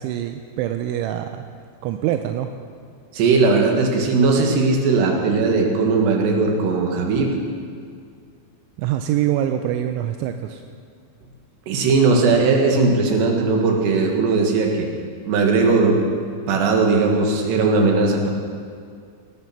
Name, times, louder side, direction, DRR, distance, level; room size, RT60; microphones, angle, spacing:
voice 1, 0.0-1.5 1.8-2.5 8.8-10.6, right 11 dB, 85° right, 7 dB, 3.0 m, -24 dB
voice 2, 3.1-7.3 11.7-14.9 15.3-16.0 16.5-18.3, right 4 dB, 70° right, 1 dB, 3.8 m, -18 dB
19.0 x 10.5 x 5.8 m, 2.2 s
omnidirectional pair, 5.3 m